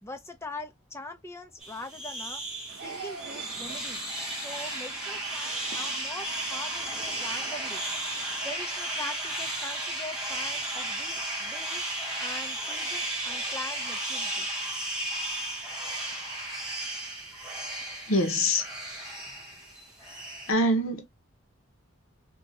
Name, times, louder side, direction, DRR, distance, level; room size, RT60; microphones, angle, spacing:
voice 1, 0.0-2.4 2.8-4.1 4.3-7.8 8.4-11.8 12.2-14.5, left 2 dB, 10° left, 0.6 m, -42 dB
sound 1, 1.6-20.5, right 1 dB, 5° right, 1.1 m, -34 dB
sound 2, 2.7-8.5, right 5 dB, 70° right, 0.6 m, -46 dB
voice 2, 18.1-18.7 20.5-21.1, left 1 dB, 75° left, 0.9 m, -24 dB
2.9 x 2.8 x 2.7 m
head